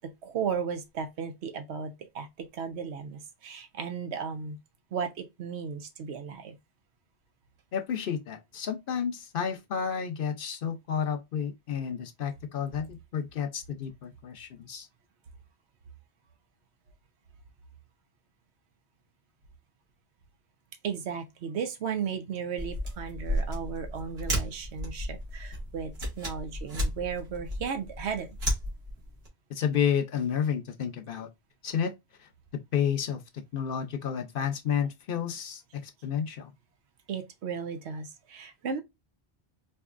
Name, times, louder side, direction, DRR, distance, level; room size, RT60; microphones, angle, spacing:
voice 1, 0.2-2.3 2.5-4.6 4.9-6.6 20.8-28.4 37.1-38.8, right 6 dB, 85° right, 1.0 m, -35 dB
voice 2, 7.7-14.9 29.5-31.3 31.6-31.9 32.7-33.2 33.5-36.5, left 8 dB, 65° left, 0.7 m, -31 dB
sound 1, 22.6-29.3, equal, 70° right, 1.8 m, -34 dB
4.4 x 2.7 x 2.4 m
omnidirectional pair, 1.1 m